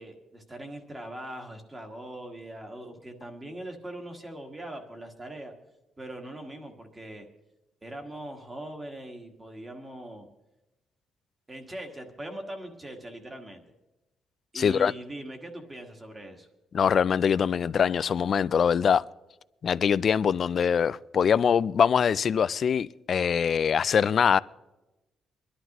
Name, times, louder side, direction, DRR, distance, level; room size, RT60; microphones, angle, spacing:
voice 1, 0.0-5.5 6.0-7.3 7.8-10.3 11.5-13.6 14.5-16.5, right 1 dB, 20° right, 1.6 m, -41 dB
voice 2, 14.5-14.9 16.7-19.0 19.6-24.4, left 7 dB, 45° left, 0.3 m, -23 dB
24.0 x 11.5 x 3.0 m
cardioid pair, 140°, 0 cm